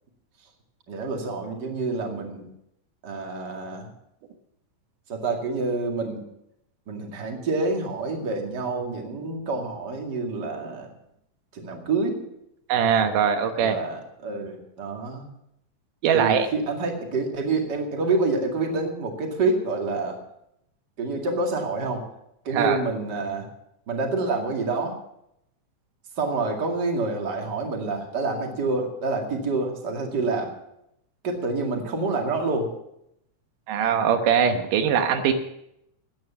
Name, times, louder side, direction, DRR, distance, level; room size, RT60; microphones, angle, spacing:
voice 1, 0.9-2.5 3.0-3.9 5.1-6.2 6.9-10.9 11.5-12.2 13.6-15.3 16.1-20.2 21.0-22.0 22.4-23.5 23.9-25.0 26.2-30.5 31.2-32.7, right 3 dB, 35° right, 2 dB, 2.5 m, -27 dB
voice 2, 12.7-13.8 16.0-16.5 22.5-22.8 33.7-35.3, right 7 dB, 85° right, 7 dB, 2.7 m, -21 dB
15.0 x 9.5 x 6.9 m, 0.79 s
omnidirectional pair, 3.6 m